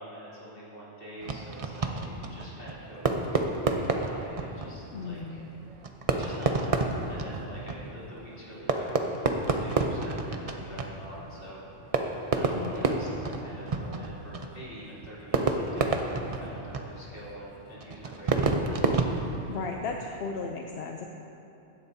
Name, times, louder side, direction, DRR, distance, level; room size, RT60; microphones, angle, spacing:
voice 1, 0.0-5.4 6.1-11.6 12.3-18.8, equal, 45° left, -8 dB, 3.0 m, -45 dB
Fireworks, 1.2-20.0, right 3 dB, 40° right, 0.5 m, -30 dB
voice 2, 4.9-5.5 12.5-13.0 19.5-21.1, left 4 dB, 60° left, 2 dB, 0.8 m, -36 dB
16.0 x 11.5 x 2.7 m, 2.9 s
omnidirectional pair, 1.3 m